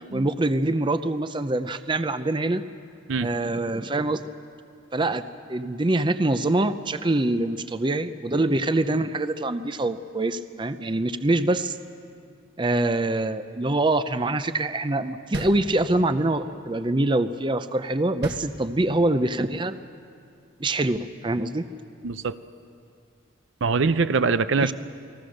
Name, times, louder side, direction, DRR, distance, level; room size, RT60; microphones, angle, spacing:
voice 1, 0.0-2.6 3.2-4.2 4.9-5.2 5.5-11.8 12.6-19.8 20.6-21.7 24.6-24.7, right 2 dB, 25° right, 11 dB, 0.6 m, -24 dB
sound 1, 15.3-16.2 18.2-19.1, right 1 dB, 55° right, 1.6 m, -35 dB
voice 2, 22.0-22.4 23.6-24.7, right 4 dB, 75° right, 13 dB, 0.6 m, -23 dB
29.0 x 20.5 x 6.5 m, 2.4 s
head